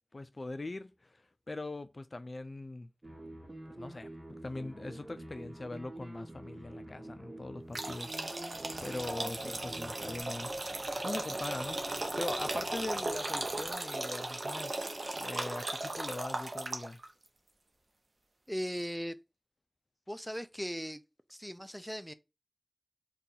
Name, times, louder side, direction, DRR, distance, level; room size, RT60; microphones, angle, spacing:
voice 1, 0.1-1.2 1.5-2.9 3.7-8.2 8.8-10.5 11.0-11.8 12.2-14.8 15.1-17.0, left 2 dB, 70° left, 0.3 m, -41 dB
sound 1, 3.0-10.2, right 1 dB, 45° right, 1.0 m, -47 dB
sound 2, 7.7-17.1, right 2 dB, 90° right, 0.5 m, -37 dB
sound 3, 8.5-13.7, right 1 dB, 70° right, 1.0 m, -55 dB
voice 2, 18.5-19.2 20.1-21.0 21.3-22.1, equal, ahead, 0.4 m, -38 dB
2.7 x 2.3 x 3.8 m
wide cardioid pair, 45°, 0 cm